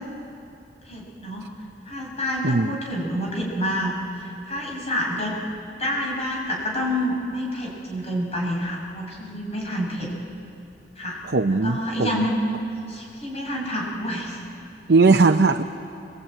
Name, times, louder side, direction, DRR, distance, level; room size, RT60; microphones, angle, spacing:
voice 1, 0.9-1.5 1.9-5.4 5.8-10.1 11.0-11.2 11.6-12.4 12.9-14.4, equal, 35° left, -2 dB, 5.7 m, -28 dB
voice 2, 2.4-2.8 11.2-12.2 14.9-15.6, right 3 dB, 70° right, 5 dB, 0.7 m, -19 dB
26.0 x 19.5 x 8.9 m, 2.6 s
head